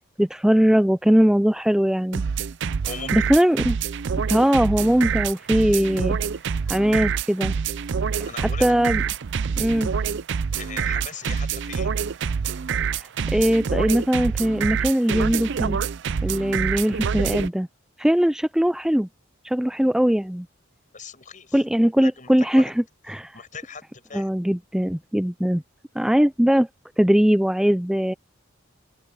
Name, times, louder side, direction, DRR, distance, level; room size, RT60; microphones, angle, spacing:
voice 1, 0.2-2.2 3.1-3.8 4.3-6.2 6.7-7.6 8.4-9.0 9.6-9.9 12.9-15.8 16.2-17.7 18.0-19.1 19.4-20.5 21.5-23.3 24.1-25.6 26.0-26.7 27.0-28.1, equal, 5° right, 0.3 m, -20 dB
sound 1, 2.1-17.5, right 6 dB, 60° right, 0.5 m, -26 dB
voice 2, 2.9-3.3 8.2-8.8 10.6-11.9 20.9-21.6 22.0-22.7 23.3-24.4, left 5 dB, 40° left, 5.7 m, -39 dB
open air
head